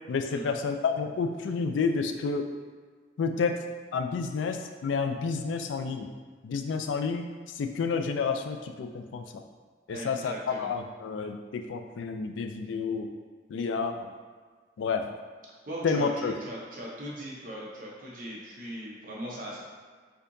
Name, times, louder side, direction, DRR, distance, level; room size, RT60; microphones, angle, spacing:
voice 1, 0.1-2.5 3.2-3.6 3.9-6.1 6.4-9.4 9.9-13.1 13.5-14.1 14.8-15.1 15.8-16.3, left 5 dB, 85° left, 6 dB, 0.3 m, -30 dB
voice 2, 9.9-10.7 15.7-19.6, equal, 45° right, -4 dB, 0.8 m, -39 dB
4.2 x 2.8 x 2.6 m, 1.5 s
head